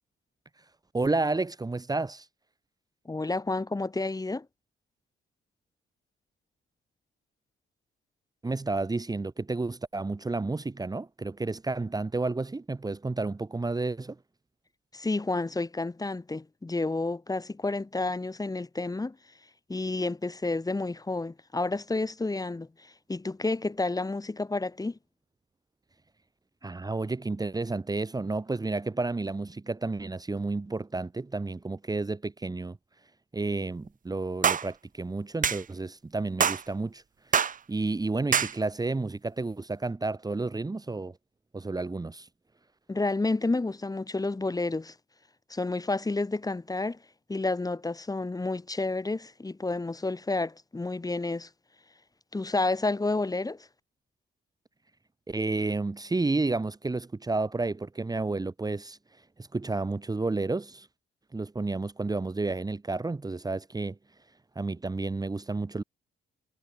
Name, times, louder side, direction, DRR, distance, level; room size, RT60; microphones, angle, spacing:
voice 1, 0.9-2.3 8.4-14.2 26.6-32.8 33.3-41.2 41.5-42.3 55.3-59.0 59.4-60.9 61.3-64.0 64.6-65.8, right 3 dB, 20° right, 1.8 m, -31 dB
voice 2, 3.1-4.5 14.9-19.2 19.7-25.0 42.9-44.9 45.5-47.0 47.3-51.5 52.3-53.7, left 3 dB, 20° left, 2.4 m, -30 dB
sound 1, 34.4-34.7 35.4-35.6 36.4-36.6 37.3-37.6 38.3-38.5, right 7 dB, 40° right, 1.3 m, -24 dB
cardioid pair, 90°, 20 cm